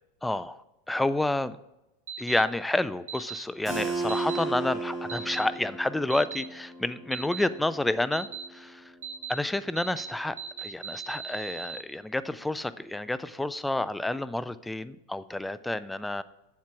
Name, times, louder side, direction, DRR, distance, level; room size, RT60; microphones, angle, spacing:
voice 1, 0.2-0.6 0.9-1.6 2.2-8.9 9.3-16.2, left 2 dB, 5° left, 16 dB, 0.3 m, -29 dB
sound 1, 2.1-2.4 3.1-3.4 4.1-4.4 5.1-5.4 6.1-6.4 7.1-7.4 8.1-8.4 9.0-9.3 9.8-10.1 10.4-11.8, right 8 dB, 90° right, 1.5 m, -38 dB
Keyboard (musical), 3.7-9.2, right 3 dB, 10° right, 2.5 m, -35 dB
7.5 x 7.2 x 4.6 m, 0.93 s
supercardioid pair, 135°, 0 cm